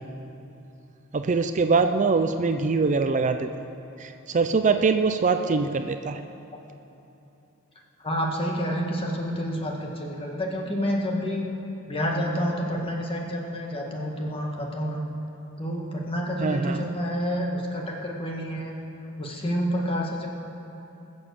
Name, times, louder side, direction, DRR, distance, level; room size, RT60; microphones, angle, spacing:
voice 1, 1.1-3.5 4.0-6.2 16.4-16.9, right 4 dB, 35° right, 8 dB, 0.4 m, -23 dB
voice 2, 8.0-11.4 11.9-15.0 15.6-18.8 19.2-20.3, equal, 25° left, -1 dB, 1.8 m, -28 dB
21.0 x 7.2 x 6.9 m, 2.9 s
head